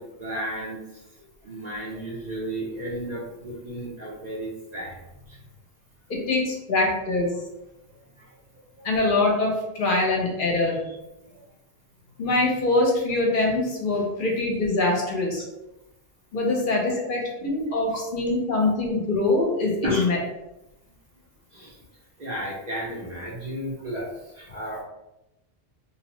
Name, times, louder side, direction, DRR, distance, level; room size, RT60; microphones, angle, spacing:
voice 1, 0.0-5.4 7.9-8.4 11.2-11.4 15.0-15.1 19.8-20.1 21.5-21.8 22.2-24.8, right 1 dB, 50° right, -4 dB, 0.6 m, -34 dB
voice 2, 6.1-7.3 8.8-10.9 12.2-15.4 16.3-20.2, left 2 dB, 60° left, -1 dB, 0.8 m, -24 dB
2.6 x 2.0 x 2.9 m, 0.93 s
omnidirectional pair, 1.1 m